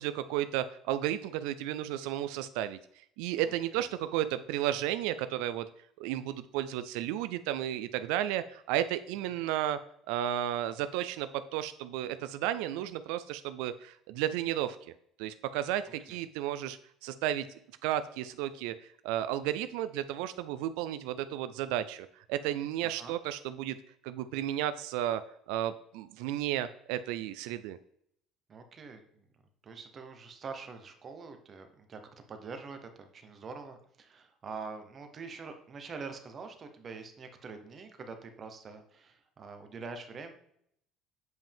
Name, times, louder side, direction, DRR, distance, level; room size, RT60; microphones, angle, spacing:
voice 1, 0.0-5.7 6.0-9.8 10.1-14.9 15.2-17.5 17.8-23.8 24.0-25.2 25.5-27.8, right 12 dB, 85° right, 12 dB, 0.3 m, -33 dB
voice 2, 28.5-29.3 29.6-32.0 32.3-40.3, right 4 dB, 30° right, 7 dB, 0.9 m, -45 dB
7.6 x 5.2 x 3.5 m, 0.71 s
cardioid pair, 150°, 0 cm